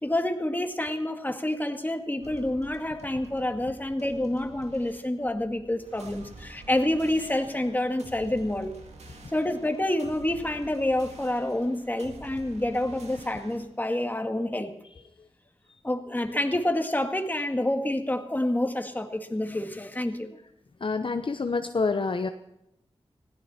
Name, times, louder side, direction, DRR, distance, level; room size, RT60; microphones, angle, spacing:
voice 1, 0.0-8.7 9.3-14.7 15.8-20.4, left 1 dB, 15° left, 6 dB, 1.9 m, -28 dB
sound 1, 2.2-13.7, right 2 dB, 90° right, 2.1 m, -48 dB
voice 2, 20.8-22.3, left 4 dB, 50° left, 7 dB, 0.9 m, -27 dB
20.0 x 16.0 x 4.4 m, 0.82 s
wide cardioid pair, 60°, 11 cm